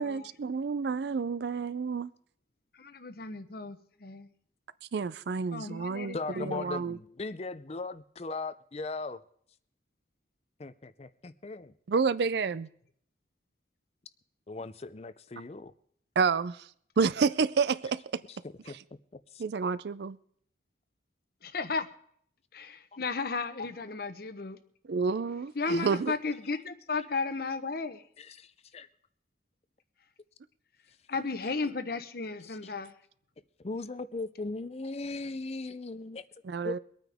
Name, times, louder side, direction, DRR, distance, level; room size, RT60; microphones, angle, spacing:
voice 1, 0.0-2.1 4.9-7.0 11.9-12.7 16.2-16.7 17.0-18.2 19.4-20.2 24.9-26.1 36.4-36.8, right 5 dB, 65° right, 0.4 m, -29 dB
voice 2, 2.7-4.3 5.5-6.6 6.9-7.0 21.4-21.9 22.5-24.6 25.5-28.0 31.1-32.9, left 3 dB, 55° left, 0.9 m, -34 dB
voice 3, 6.1-9.2 10.6-11.7 14.5-15.7 18.6-18.8 19.1-19.4 28.2-28.9 32.4-32.6 33.6-36.2 36.6-36.8, left 3 dB, 35° left, 0.5 m, -38 dB
23.5 x 9.3 x 3.5 m
head